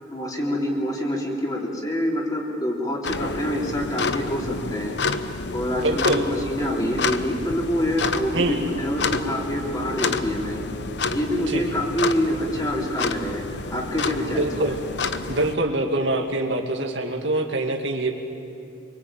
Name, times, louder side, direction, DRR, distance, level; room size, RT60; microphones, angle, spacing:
voice 1, 0.1-4.9 5.5-10.6 11.1-13.4 13.7-14.5, equal, 20° left, -1 dB, 3.8 m, -26 dB
sound 1, 3.0-15.6, left 4 dB, 65° left, 1.0 m, -29 dB
sound 2, 5.2-11.9, right 1 dB, 90° left, 7.7 m, -46 dB
voice 2, 5.8-6.2 8.3-8.6 11.3-11.6 14.4-14.8 15.3-18.1, right 2 dB, 75° right, 3 dB, 2.5 m, -24 dB
26.0 x 24.0 x 9.0 m, 2.5 s
head